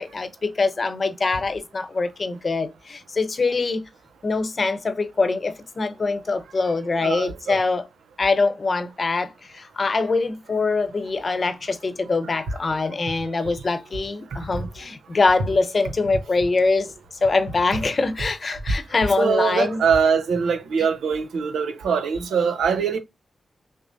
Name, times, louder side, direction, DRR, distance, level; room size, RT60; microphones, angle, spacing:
voice 1, 0.0-3.8 4.2-7.9 8.2-16.9 17.2-19.8, left 3 dB, 50° left, 0.8 m, -23 dB
voice 2, 7.0-7.6 19.2-23.0, right 6 dB, 90° right, 0.8 m, -22 dB
6.2 x 2.1 x 2.7 m
cardioid pair, 50°, 0 cm